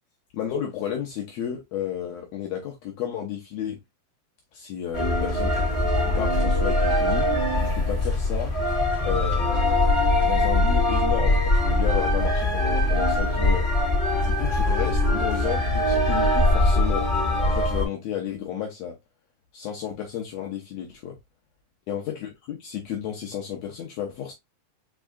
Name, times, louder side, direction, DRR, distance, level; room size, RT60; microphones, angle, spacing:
voice 1, 0.3-3.8 4.5-7.3 7.7-8.5 9.0-9.8 10.2-13.7 14.2-17.1 17.4-19.0 19.5-21.2 21.9-24.3, left 9 dB, 80° left, 1.5 m, -32 dB
sound 1, 4.9-17.8, left 1 dB, 15° left, 2.5 m, -22 dB
5.4 x 3.6 x 2.3 m
omnidirectional pair, 4.1 m